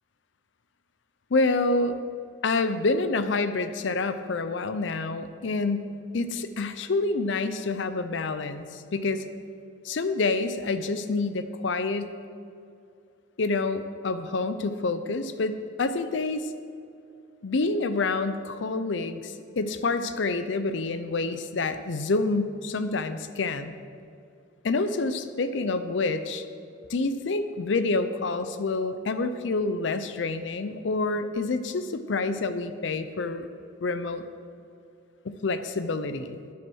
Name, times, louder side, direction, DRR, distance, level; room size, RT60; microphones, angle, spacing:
voice 1, 1.3-2.0 2.4-9.2 9.8-12.2 13.4-16.5 17.4-23.7 24.6-26.4 26.9-33.5 33.8-34.2 35.2-36.4, left 3 dB, 65° left, 11 dB, 0.5 m, -27 dB
10.5 x 7.7 x 6.2 m, 2.4 s
head